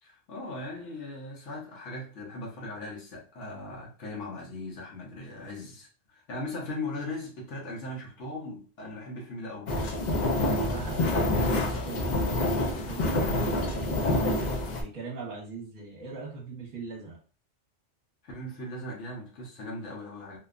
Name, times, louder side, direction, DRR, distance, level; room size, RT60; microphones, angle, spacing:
voice 1, 0.0-9.7 18.2-20.4, left 2 dB, 75° left, 1.1 m, -39 dB
sound 1, 9.7-14.8, left 2 dB, 55° left, 0.5 m, -27 dB
voice 2, 10.2-12.5 12.8-17.2, right 4 dB, 40° right, 1.0 m, -41 dB
2.8 x 2.1 x 2.4 m
omnidirectional pair, 1.2 m